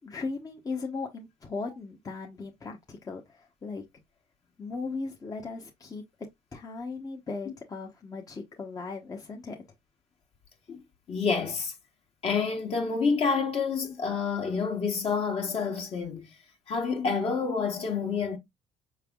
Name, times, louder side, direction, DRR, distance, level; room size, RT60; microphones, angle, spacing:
voice 1, 0.0-3.8 4.6-6.0 6.5-9.6, left 4 dB, 30° left, 0.9 m, -37 dB
voice 2, 11.1-11.7 12.2-16.3 16.7-18.4, left 5 dB, 50° left, 1.5 m, -28 dB
5.1 x 3.3 x 2.3 m
supercardioid pair, 70°, 13 cm